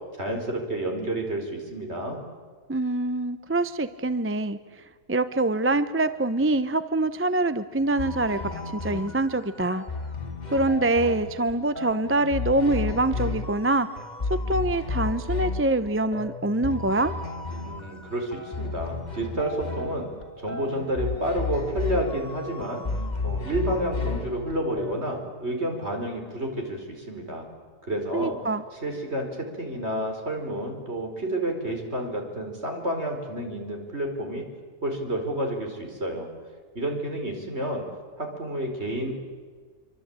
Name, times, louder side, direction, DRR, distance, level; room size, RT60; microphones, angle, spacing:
voice 1, 0.2-2.2 17.6-20.1 20.4-22.9 23.2-27.5 27.8-28.4 28.8-34.4 34.8-36.3 36.8-37.8 38.2-39.2, right 1 dB, 45° right, 3 dB, 5.2 m, -30 dB
voice 2, 2.7-4.8 5.1-8.4 8.7-9.8 10.5-13.9 14.3-17.1 28.1-28.6, right 2 dB, 15° right, 12 dB, 0.6 m, -25 dB
sound 1, 8.0-25.3, left 3 dB, 30° left, 2.1 m, -33 dB
26.5 x 24.5 x 8.9 m, 1.5 s
omnidirectional pair, 1.6 m